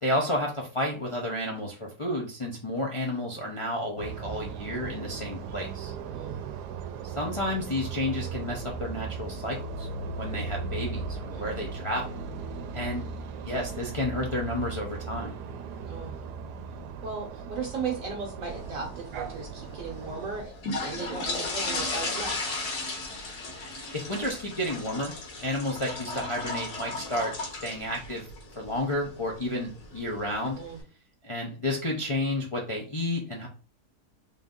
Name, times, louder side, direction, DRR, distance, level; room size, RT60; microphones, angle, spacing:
voice 1, 0.0-5.9 7.0-12.2 12.7-13.1 13.4-15.3 23.9-27.3 27.6-28.3 28.5-30.6 31.2-33.5, left 1 dB, 35° left, -2 dB, 0.4 m, -31 dB
sound 1, 4.0-20.4, right 5 dB, 90° right, 1.2 m, -37 dB
voice 2, 6.1-6.4 11.3-11.6 15.8-16.2 17.0-20.5 20.8-22.6 30.5-30.8, right 5 dB, 60° right, 0 dB, 1.2 m, -36 dB
sound 2, 18.4-30.8, left 2 dB, 75° left, 1.8 m, -36 dB
3.7 x 2.7 x 3.7 m, 0.36 s
omnidirectional pair, 1.7 m